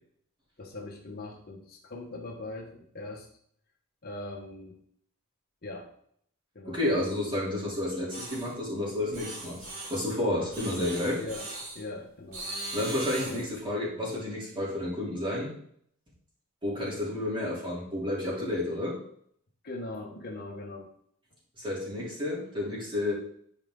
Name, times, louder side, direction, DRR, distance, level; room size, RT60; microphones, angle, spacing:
voice 1, 0.6-3.3 4.0-4.8 5.6-5.9 6.5-6.8 10.7-11.5 11.7-12.5 13.2-13.5 19.6-20.9, left 2 dB, 45° left, 0 dB, 1.2 m, -41 dB
voice 2, 6.7-9.6 9.9-11.2 12.7-15.5 16.6-19.0 21.6-23.1, left 1 dB, 25° right, -6 dB, 3.2 m, -31 dB
sound 1, 8.1-8.5 9.1-10.1 10.5-11.8 12.3-13.5, right 2 dB, 85° right, 2.3 m, -39 dB
10.0 x 4.8 x 3.8 m, 0.66 s
head